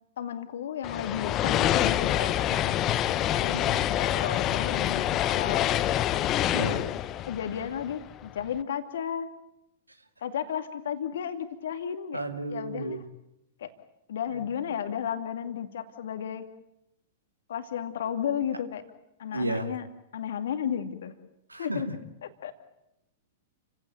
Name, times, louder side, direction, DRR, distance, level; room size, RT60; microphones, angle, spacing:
voice 1, 0.2-2.8 3.4-5.7 6.5-6.9 7.3-9.3 10.2-12.2 12.5-13.0 13.6-13.7 14.1-16.5 17.5-18.8 19.2-19.9 20.1-21.1 21.6-21.9 22.2-22.5, left 8 dB, 65° left, 9 dB, 2.4 m, -33 dB
sound 1, 0.8-8.3, left 12 dB, 30° left, 1.0 m, -26 dB
voice 2, 3.5-3.9 6.5-6.9 12.1-13.0 19.3-19.7 21.5-21.9, right 2 dB, 90° right, 8 dB, 2.3 m, -33 dB
29.5 x 16.5 x 9.1 m, 0.85 s
figure-of-eight pair, 100°, 0 cm